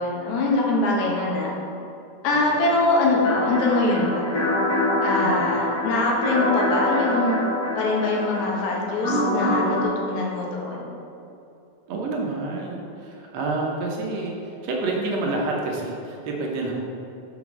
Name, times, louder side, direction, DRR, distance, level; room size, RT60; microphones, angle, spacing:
voice 1, 0.0-1.5 2.2-4.3 5.0-7.4 7.8-10.9, left 2 dB, 75° left, -2 dB, 2.5 m, -23 dB
sound 1, 3.2-9.8, left 1 dB, 45° left, 1.4 m, -25 dB
voice 2, 11.9-16.8, right 2 dB, 70° right, -1 dB, 1.9 m, -28 dB
6.0 x 5.6 x 5.9 m, 2.7 s
omnidirectional pair, 3.4 m